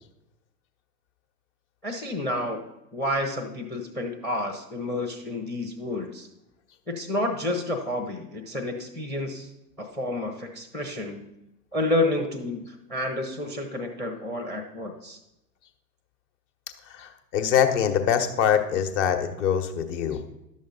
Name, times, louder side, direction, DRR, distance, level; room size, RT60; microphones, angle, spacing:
voice 1, 1.8-2.6 2.9-6.3 6.9-9.5 9.8-11.2 11.7-15.2, left 1 dB, 5° left, 6 dB, 0.6 m, -30 dB
voice 2, 16.9-20.3, left 8 dB, 45° left, 7 dB, 1.1 m, -24 dB
11.0 x 7.2 x 4.0 m, 0.91 s
figure-of-eight pair, 110°, 49 cm